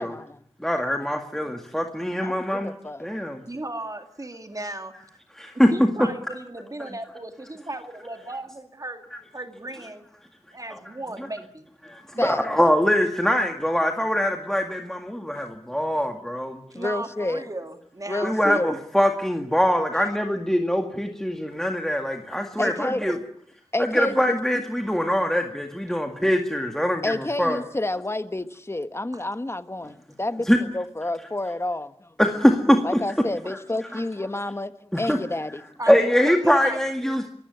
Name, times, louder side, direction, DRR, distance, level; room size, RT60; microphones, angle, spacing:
voice 1, 0.0-0.4 2.2-3.1 12.2-12.5 15.3-15.4 16.7-17.5 18.1-18.7 22.6-23.0 23.7-24.4 27.0-32.1 32.8-35.7, left 2 dB, 25° left, 1.4 m, -29 dB
voice 2, 0.6-3.4 5.4-5.7 6.8-6.9 11.9-16.6 18.2-23.1 23.9-27.1 27.4-27.6 30.5-30.6 32.2-32.8 33.9-34.0 34.9-35.2 35.9-37.3, equal, 5° left, 2.0 m, -23 dB
voice 3, 3.5-5.1 5.7-9.0 9.3-10.1 10.5-11.7 12.1-12.3 16.7-18.6 19.9-20.0 22.5-23.2 29.8-29.9 35.8-36.8, right 2 dB, 30° right, 2.1 m, -36 dB
24.0 x 15.0 x 9.6 m
wide cardioid pair, 70°, 11 cm